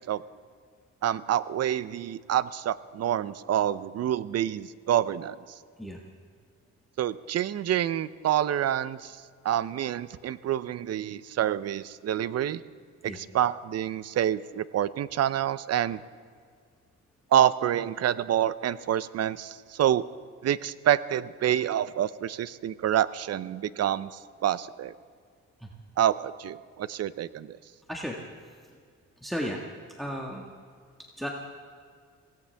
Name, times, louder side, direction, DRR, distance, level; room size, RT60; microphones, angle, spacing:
voice 1, 1.0-5.4 7.0-9.2 9.4-12.6 13.0-16.0 17.3-20.0 20.4-24.9 26.0-27.6, right 11 dB, 55° right, 17 dB, 0.6 m, -27 dB
voice 2, 29.2-29.6 30.0-30.5 31.2-31.3, equal, ahead, -1 dB, 1.6 m, -34 dB
24.0 x 17.5 x 3.5 m, 2.1 s
cardioid pair, 90°, 30 cm